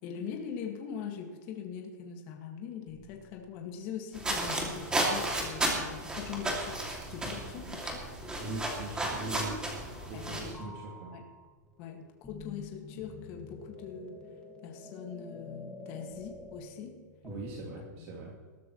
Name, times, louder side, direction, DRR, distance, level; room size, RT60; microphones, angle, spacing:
voice 1, 0.0-6.8 7.1-8.1 10.1-10.7 11.1-11.3 11.8-14.2 14.6-17.0 18.0-18.1, left 7 dB, 35° left, 2 dB, 1.9 m, -42 dB
sound 1, 2.9-3.7 4.4-5.5 7.2-7.8 9.1-10.3 10.5-17.9, left 3 dB, 10° left, 1.6 m, -49 dB
sound 2, 4.1-10.5, right 1 dB, 10° right, 2.4 m, -33 dB
voice 2, 8.4-9.7 10.0-11.1 17.2-18.3, right 2 dB, 40° right, -2 dB, 2.4 m, -41 dB
21.0 x 13.0 x 3.1 m, 1.5 s
supercardioid pair, 160°, 10 cm